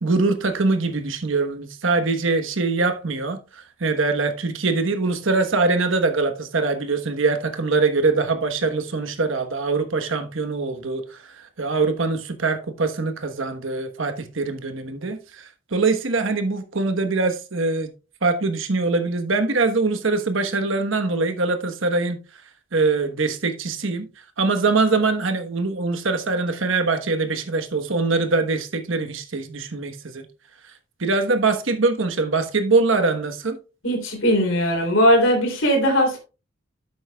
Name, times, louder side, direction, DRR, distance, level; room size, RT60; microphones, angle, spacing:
voice 1, 0.0-17.9 18.2-22.2 22.7-24.1 24.4-30.2 31.0-33.6, right 3 dB, 65° right, 1.2 m, -23 dB
voice 2, 33.8-36.2, equal, 65° left, 3.2 m, -19 dB
11.0 x 8.0 x 2.3 m
head